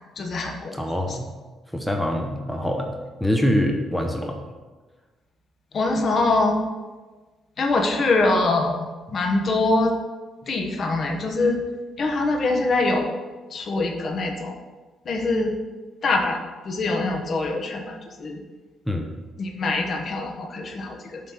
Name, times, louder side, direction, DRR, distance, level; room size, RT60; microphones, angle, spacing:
voice 1, 0.2-0.8 1.1-1.2 5.7-6.6 7.6-8.8 9.1-9.9 10.5-11.6 12.0-13.1 13.5-14.5 15.1-15.6 16.0-16.4 16.6-18.4 19.4-21.2, left 2 dB, 50° left, 2 dB, 1.1 m, -23 dB
voice 2, 0.7-1.2 1.7-4.4 18.9-19.1, equal, 5° left, 3 dB, 0.8 m, -25 dB
7.5 x 3.3 x 5.6 m, 1.3 s
cardioid pair, 90°, 0 cm